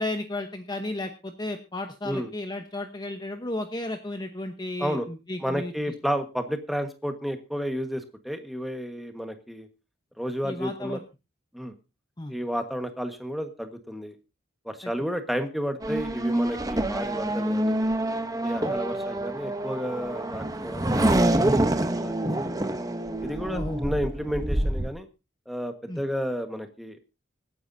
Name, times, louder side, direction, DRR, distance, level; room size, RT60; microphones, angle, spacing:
voice 1, 0.0-5.9 10.4-11.0 12.2-12.3 14.8-14.9 18.6-18.7 23.5-23.9 25.9-26.0, left 1 dB, 20° left, 6 dB, 1.0 m, -33 dB
voice 2, 5.4-9.7 10.2-11.0 11.5-11.7 12.3-14.1 14.6-17.8 18.4-22.3 23.2-25.1 25.5-27.0, equal, ahead, 6 dB, 1.4 m, -32 dB
Race car auto racing / Accelerating revving vroom, 15.8-24.9, right 1 dB, 20° right, 0.9 m, -26 dB
Bowed string instrument, 17.3-21.5, right 1 dB, 65° left, 4.6 m, -54 dB
25.0 x 9.6 x 2.7 m, 0.28 s
head